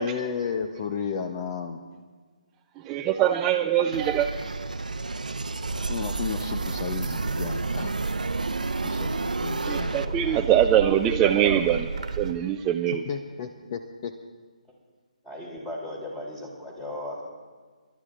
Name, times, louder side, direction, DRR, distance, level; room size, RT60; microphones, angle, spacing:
voice 1, 0.0-1.8 5.9-7.9 8.8-10.4 13.0-14.2, left 6 dB, 35° left, 6 dB, 0.7 m, -33 dB
voice 2, 2.8-4.3 9.7-11.9 12.2-13.0, right 10 dB, 15° right, 5 dB, 0.4 m, -23 dB
sound 1, 3.9-10.1, right 3 dB, 90° right, 0.7 m, -32 dB
sound 2, 5.6-12.3, right 4 dB, 65° right, 1.3 m, -32 dB
voice 3, 15.2-17.2, left 1 dB, 10° left, -2 dB, 2.9 m, -36 dB
30.0 x 12.5 x 2.5 m, 1.5 s
figure-of-eight pair, 150°, 4 cm